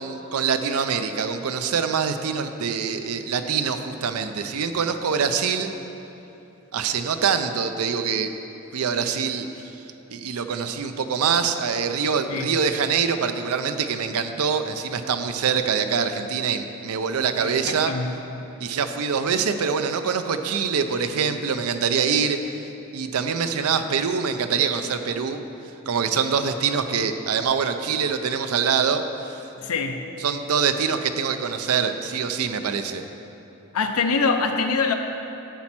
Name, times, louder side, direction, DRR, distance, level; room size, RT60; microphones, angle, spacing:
voice 1, 0.0-5.7 6.7-8.4 8.7-9.5 10.1-17.9 18.6-22.4 22.9-25.4 25.9-29.4 30.2-33.0, right 6 dB, 90° right, 8 dB, 0.5 m, -24 dB
voice 2, 17.4-18.2 29.6-30.1 33.7-34.9, left 4 dB, 90° left, 5 dB, 0.6 m, -24 dB
10.5 x 4.3 x 5.9 m, 2.9 s
head